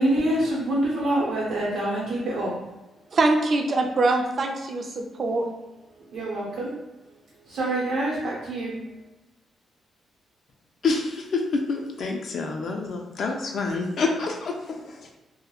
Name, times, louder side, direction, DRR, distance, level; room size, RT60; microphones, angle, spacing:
voice 1, 0.0-2.5 6.1-6.7 7.5-8.8, right 1 dB, 85° right, -6 dB, 0.7 m, -26 dB
voice 2, 3.1-5.5, right 2 dB, 45° right, 3 dB, 0.3 m, -23 dB
voice 3, 10.8-15.0, left 3 dB, 60° left, 2 dB, 0.3 m, -27 dB
2.2 x 2.0 x 2.9 m, 1.1 s
cardioid pair, 120°, 0 cm